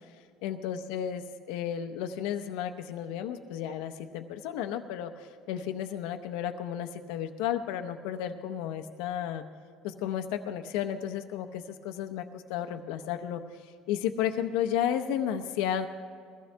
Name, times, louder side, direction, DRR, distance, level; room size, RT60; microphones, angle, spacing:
voice 1, 0.4-9.4 9.8-15.9, left 9 dB, 90° left, 7 dB, 0.7 m, -33 dB
21.0 x 15.0 x 3.4 m, 2.2 s
cardioid pair, 135°, 0 cm